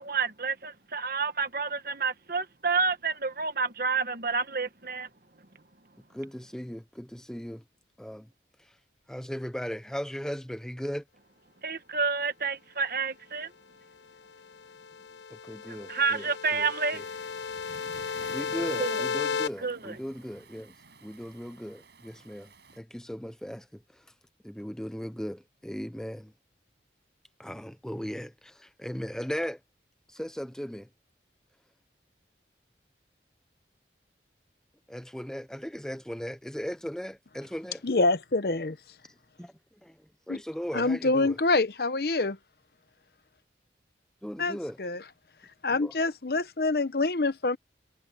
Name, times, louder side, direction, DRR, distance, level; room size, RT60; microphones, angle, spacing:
voice 1, 0.0-5.1 11.6-13.5 15.9-17.0 18.8-19.0 19.6-20.0, right 4 dB, 50° right, 1.4 m, -29 dB
voice 2, 6.1-7.6 8.0-8.3 8.6-8.8 9.1-11.0 15.3-17.0 18.3-20.7 21.0-24.1 24.4-26.3 27.4-29.6 30.1-30.9 34.9-37.8 39.4-39.5 39.8-41.4 44.2-44.8 45.7-45.9, equal, 5° left, 0.5 m, -37 dB
sound 1, 14.5-19.5, left 6 dB, 90° left, 0.7 m, -34 dB
Waves surf, 16.9-22.8, right 4 dB, 70° right, 5.6 m, -52 dB
voice 3, 37.8-38.8 40.3-40.4 40.7-42.4 44.4-45.0 45.6-47.6, left 3 dB, 55° left, 0.8 m, -26 dB
head